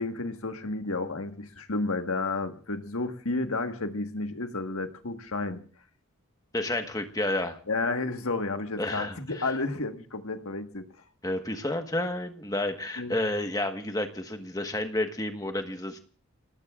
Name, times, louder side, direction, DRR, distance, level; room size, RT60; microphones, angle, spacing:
voice 1, 0.0-5.6 7.7-10.8 13.0-13.2, left 3 dB, 75° left, 6 dB, 1.5 m, -31 dB
voice 2, 6.5-7.6 8.8-9.5 11.2-16.0, left 1 dB, 15° left, 6 dB, 1.3 m, -30 dB
30.0 x 19.0 x 2.5 m, 0.38 s
head